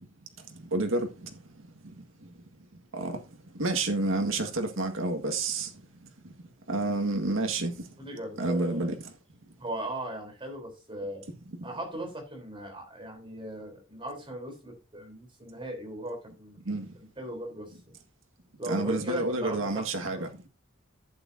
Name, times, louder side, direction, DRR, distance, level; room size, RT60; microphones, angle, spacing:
voice 1, 0.7-1.3 2.9-3.2 3.6-5.7 6.7-7.7 8.4-8.9 16.7-16.9 18.7-20.3, right 2 dB, 85° right, 1.8 m, -29 dB
voice 2, 8.0-8.9 9.6-11.3 11.6-16.6 17.2-17.7 18.6-19.9 20.1-20.3, right 1 dB, 25° right, 3.8 m, -38 dB
11.5 x 8.7 x 2.7 m
head